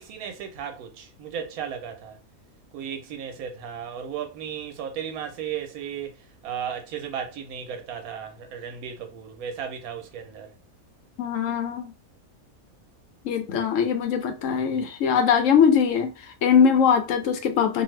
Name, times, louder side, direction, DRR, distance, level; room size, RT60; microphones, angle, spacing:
voice 1, 0.0-2.2 2.7-10.5, right 8 dB, 85° right, 1.1 m, -35 dB
voice 2, 11.2-11.9 13.2-17.8, left 7 dB, 65° left, 0.9 m, -21 dB
2.7 x 2.4 x 3.1 m
omnidirectional pair, 1.5 m